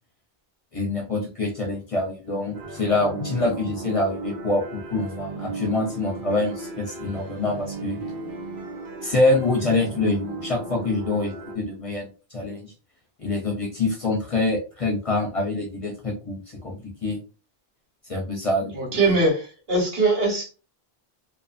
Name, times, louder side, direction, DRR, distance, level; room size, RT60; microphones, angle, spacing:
voice 1, 0.7-8.0 9.0-12.7 13.2-17.2 18.1-18.7, left 2 dB, 40° left, 0.6 m, -25 dB
sound 1, 2.5-11.6, right 3 dB, 90° right, 1.0 m, -36 dB
voice 2, 18.7-20.5, right 2 dB, 75° right, 1.5 m, -22 dB
2.5 x 2.5 x 2.4 m
omnidirectional pair, 1.0 m